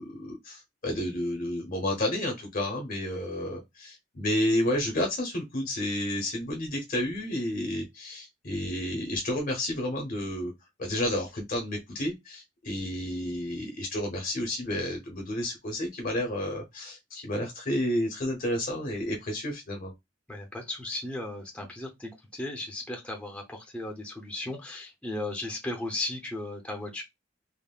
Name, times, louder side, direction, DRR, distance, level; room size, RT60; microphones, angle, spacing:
voice 1, 0.0-10.5 10.8-19.9, left 1 dB, 45° left, 0.7 m, -31 dB
voice 2, 20.3-27.0, left 2 dB, 5° left, 0.6 m, -36 dB
3.5 x 2.0 x 2.2 m
head